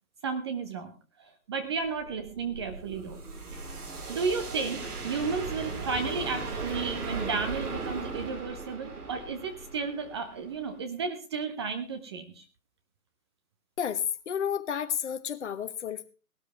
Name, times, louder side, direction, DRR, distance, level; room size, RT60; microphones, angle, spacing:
voice 1, 0.2-3.2 3.5-3.6 4.1-12.4, right 5 dB, 15° right, 6 dB, 0.7 m, -33 dB
sound 1, 1.8-10.8, right 3 dB, 70° right, 4.5 m, -38 dB
voice 2, 13.8-16.1, left 8 dB, 45° left, 12 dB, 1.3 m, -31 dB
18.5 x 12.5 x 3.5 m, 0.33 s
figure-of-eight pair, 145°, 46 cm